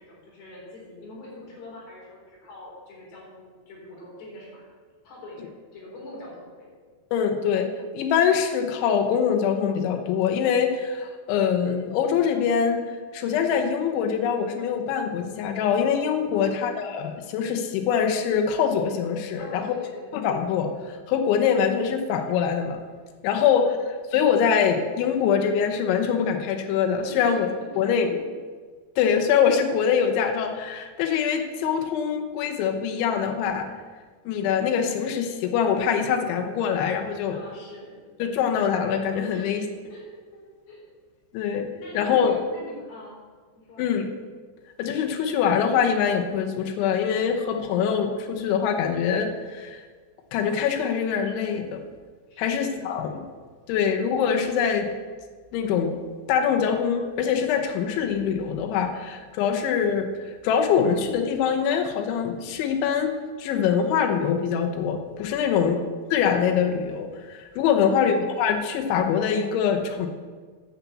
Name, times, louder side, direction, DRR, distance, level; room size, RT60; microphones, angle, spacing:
voice 1, 0.0-4.7 5.0-6.7 16.3-16.7 19.4-20.2 23.4-23.8 27.1-27.4 27.7-27.8 37.2-37.9 39.3-40.4 40.7-40.8 41.7-43.2 43.6-43.8 52.3-53.1 65.4-65.8 67.7-68.2, left 1 dB, 65° left, -5 dB, 6.1 m, -43 dB
voice 2, 7.1-12.8 13.1-19.7 20.1-22.8 23.2-23.8 24.1-27.5 27.8-28.2 29.0-33.7 34.3-37.4 38.2-39.7 41.3-41.7 41.9-42.4 43.8-44.1 44.8-49.8 50.3-51.8 52.4-53.3 53.7-54.9 55.5-56.0 56.3-63.1 63.4-65.8 66.1-70.1, left 7 dB, 90° left, 5 dB, 3.4 m, -24 dB
10.0 x 7.0 x 8.3 m, 1.5 s
omnidirectional pair, 5.2 m